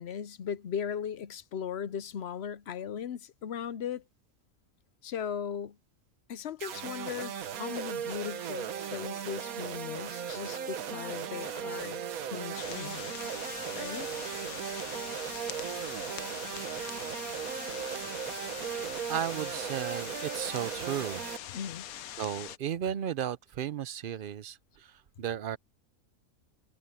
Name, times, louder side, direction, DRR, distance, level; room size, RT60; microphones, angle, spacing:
voice 1, 0.0-4.0 5.0-5.8 6.3-12.0 12.3-13.1 13.7-14.1 21.5-21.8, left 8 dB, 60° left, 0.8 m, -38 dB
sound 1, 6.6-21.4, right 8 dB, 80° right, 1.4 m, -37 dB
sound 2, 12.6-22.6, left 11 dB, 85° left, 1.2 m, -43 dB
voice 2, 19.1-21.2 22.2-24.9 25.2-25.6, right 9 dB, 60° right, 0.6 m, -34 dB
omnidirectional pair, 1.5 m